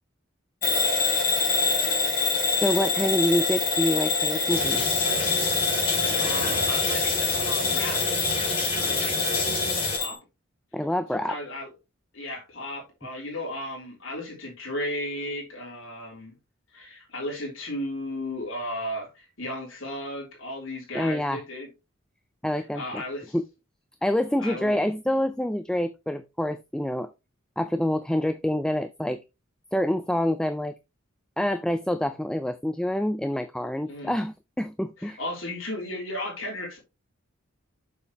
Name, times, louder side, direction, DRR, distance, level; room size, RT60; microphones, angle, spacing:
Bell / Alarm, 0.6-10.2, left 3 dB, 45° left, 4.0 m, -25 dB
voice 1, 2.6-4.8 10.7-11.4 20.9-21.4 22.4-23.0 23.3-23.4 24.0-27.1 27.6-29.2 29.7-30.7 31.4-35.2, left 1 dB, 5° left, 0.4 m, -26 dB
sound 1, 4.5-10.0, left 2 dB, 25° left, 4.3 m, -29 dB
voice 2, 6.2-8.0 8.8-9.2 9.9-10.2 11.1-11.7 12.1-16.3 16.7-21.7 22.5-23.4 24.4-24.8 33.9-34.1 35.0-36.8, left 1 dB, 80° left, 3.4 m, -35 dB
6.8 x 6.7 x 3.0 m
head